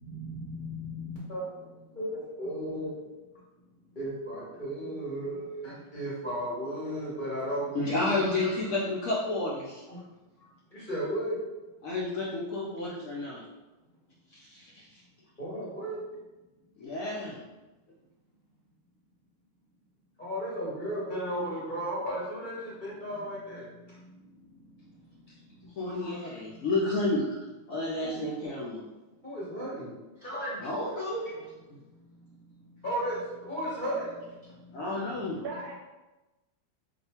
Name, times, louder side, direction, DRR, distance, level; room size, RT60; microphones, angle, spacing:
voice 1, 0.0-1.5 2.0-2.9 4.0-8.6 10.9-11.3 15.4-16.0 20.2-23.6 26.0-26.1 28.0-28.2 29.2-29.9 30.2-30.6 32.8-33.2 33.4-34.0, equal, 40° left, -8 dB, 0.8 m, -34 dB
voice 2, 7.7-9.8 11.8-13.4 14.5-14.9 16.8-17.4 25.8-27.3 27.7-28.8 30.6-31.3 34.7-35.4, left 2 dB, 70° left, -5 dB, 0.8 m, -31 dB
voice 3, 34.8-35.7, right 3 dB, 70° right, -2 dB, 1.1 m, -41 dB
2.6 x 2.4 x 4.2 m, 1.1 s
omnidirectional pair, 1.9 m